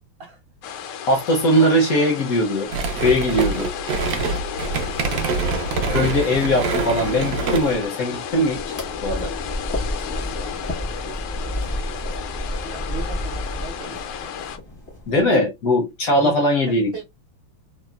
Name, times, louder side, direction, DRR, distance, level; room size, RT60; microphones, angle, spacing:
sound 1, 0.6-14.6, left 8 dB, 90° left, 1.5 m, -33 dB
voice 1, 1.1-2.7 3.0-3.7 5.9-8.8 9.0-9.3 15.1-16.9, equal, 70° left, 0.8 m, -20 dB
sound 2, 2.7-7.9, right 3 dB, 80° right, 0.8 m, -25 dB
voice 2, 4.8-5.5 10.1-12.3 12.6-14.1 16.1-17.0, right 4 dB, 50° right, 0.7 m, -39 dB
sound 3, 8.3-15.3, left 1 dB, 30° left, 0.5 m, -31 dB
3.6 x 2.1 x 2.2 m
omnidirectional pair, 2.3 m